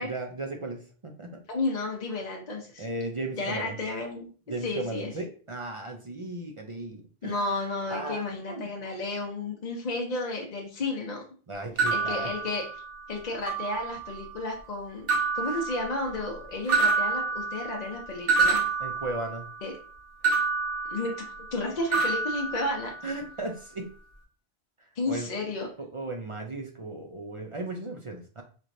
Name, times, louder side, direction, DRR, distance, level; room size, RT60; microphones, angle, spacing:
voice 1, 0.0-1.3 2.8-3.7 4.5-8.7 11.5-12.3 15.4-15.6 16.1-16.2 18.8-19.5 23.0-23.9 25.1-25.3 25.9-28.4, right 2 dB, 40° right, 3 dB, 0.5 m, -36 dB
voice 2, 1.5-2.9 3.3-4.3 4.6-5.1 7.2-11.2 11.9-12.7 13.1-15.1 15.3-18.7 19.6-19.7 20.9-21.2 21.5-22.9 25.0-25.7, left 2 dB, 45° left, -1 dB, 0.8 m, -32 dB
sound 1, 11.8-13.1 13.5-14.2 15.1-16.3 16.7-19.6 20.2-21.6 21.9-23.2, right 4 dB, 60° right, 1.6 m, -28 dB
4.2 x 3.1 x 2.6 m, 0.39 s
omnidirectional pair, 1.1 m